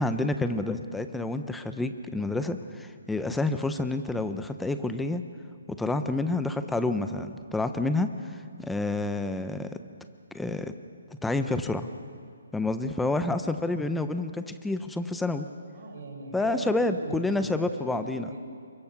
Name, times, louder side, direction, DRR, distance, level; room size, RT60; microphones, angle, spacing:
voice 1, 0.0-5.2 5.7-9.8 10.3-10.7 11.2-11.9 12.5-15.5 16.3-18.3, left 2 dB, 5° left, 9 dB, 0.6 m, -29 dB
voice 2, 15.7-18.4, right 3 dB, 50° right, 1 dB, 6.3 m, -39 dB
28.0 x 23.0 x 5.9 m, 2.3 s
hypercardioid pair, 175°, 0 cm